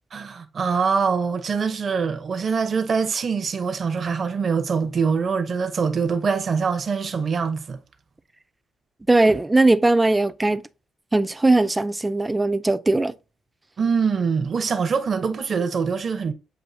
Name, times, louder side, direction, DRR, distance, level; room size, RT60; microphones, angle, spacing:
voice 1, 0.1-7.8 13.8-16.3, right 5 dB, 45° right, 0.7 m, -24 dB
voice 2, 9.1-10.6 11.1-13.1, right 2 dB, 15° right, 0.3 m, -19 dB
7.7 x 2.6 x 2.6 m
cardioid pair, 90°, 0 cm